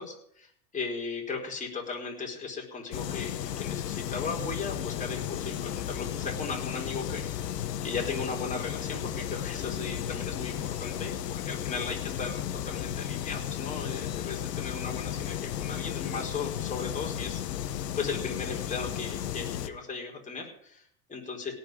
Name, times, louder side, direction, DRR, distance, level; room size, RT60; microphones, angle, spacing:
voice 1, 0.0-21.5, left 4 dB, 15° left, -1 dB, 4.5 m, -37 dB
sound 1, 2.9-19.7, left 10 dB, 90° left, 1.2 m, -34 dB
17.5 x 6.0 x 9.1 m, 0.65 s
hypercardioid pair, 120°, 47 cm